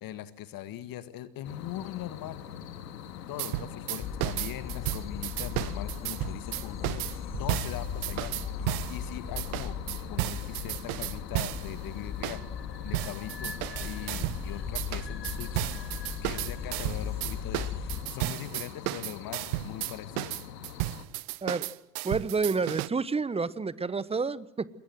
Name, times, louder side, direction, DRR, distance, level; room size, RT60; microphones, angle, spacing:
voice 1, 0.0-2.4 3.3-8.3 8.9-9.8 10.0-12.4 12.8-15.8 16.2-20.4, left 13 dB, 45° left, 13 dB, 1.8 m, -41 dB
sound 1, 1.4-21.0, left 9 dB, 75° left, 2.5 m, -44 dB
sound 2, 3.4-9.0 9.4-11.7 12.2-12.4 12.9-14.4 14.8-22.9, right 20 dB, 60° right, 1.1 m, -33 dB
sound 3, 4.0-18.0, left 6 dB, 25° left, 3.4 m, -38 dB
voice 2, 22.0-24.7, right 4 dB, 10° right, 18 dB, 1.1 m, -29 dB
28.0 x 22.0 x 7.8 m, 0.85 s
hypercardioid pair, 80°, 49 cm